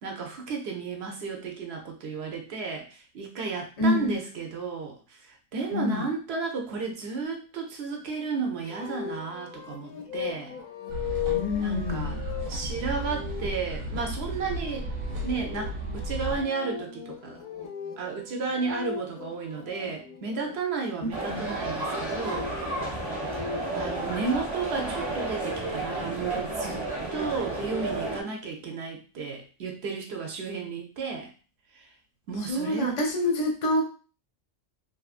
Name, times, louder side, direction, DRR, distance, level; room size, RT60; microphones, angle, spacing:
voice 1, 0.0-10.6 11.6-12.2 12.5-14.9 15.2-17.4 18.0-22.9 23.7-31.3 31.7-31.9 32.3-33.0, right 4 dB, 60° right, 2 dB, 0.8 m, -33 dB
voice 2, 3.8-4.2 5.7-6.1 11.3-12.2 21.2-21.5 32.5-33.8, left 2 dB, 40° left, 1 dB, 0.6 m, -27 dB
sound 1, 8.6-20.6 21.7-23.9, left 8 dB, 90° left, 1.0 m, -38 dB
sound 2, 10.9-16.4, right 1 dB, 90° right, 1.1 m, -34 dB
sound 3, 21.1-28.2, right 2 dB, 20° right, 1.0 m, -32 dB
2.9 x 2.4 x 2.4 m, 0.36 s
omnidirectional pair, 1.4 m